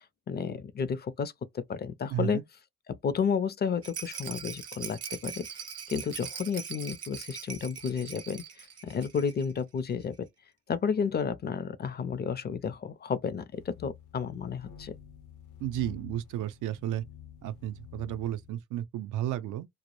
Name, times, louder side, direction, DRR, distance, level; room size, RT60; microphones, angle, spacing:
voice 1, 0.3-2.4 3.0-5.5 5.9-10.2 10.7-14.9, left 6 dB, 35° left, 0.4 m, -32 dB
voice 2, 2.1-2.4 15.6-17.0 17.4-19.7, right 12 dB, 85° right, 0.5 m, -33 dB
Rattle, 3.8-9.5 9.8-9.9 10.1-10.2, right 7 dB, 55° right, 0.7 m, -41 dB
sound 1, 13.5-18.5, left 9 dB, 75° left, 0.7 m, -49 dB
2.1 x 2.0 x 2.9 m
cardioid pair, 90°, 30 cm